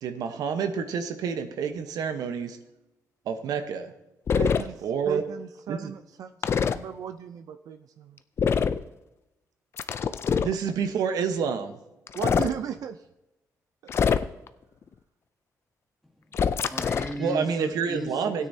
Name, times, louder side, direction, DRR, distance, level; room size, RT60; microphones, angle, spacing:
voice 1, 0.0-2.6 3.3-3.9 4.8-5.2 5.7-5.9 10.4-11.8 17.2-18.5, right 6 dB, 85° right, 7 dB, 1.1 m, -28 dB
sound 1, 4.3-4.6 6.4-6.8 8.4-8.8 9.8-10.5 12.1-12.5 13.9-14.5 16.3-17.2, left 6 dB, 40° left, 0.5 m, -24 dB
voice 2, 4.3-8.2 12.1-13.1 13.8-13.9, right 8 dB, 70° right, 9 dB, 0.5 m, -36 dB
voice 3, 16.0-18.5, equal, ahead, 3 dB, 1.5 m, -37 dB
16.5 x 9.5 x 2.8 m, 0.93 s
cardioid pair, 150°, 6 cm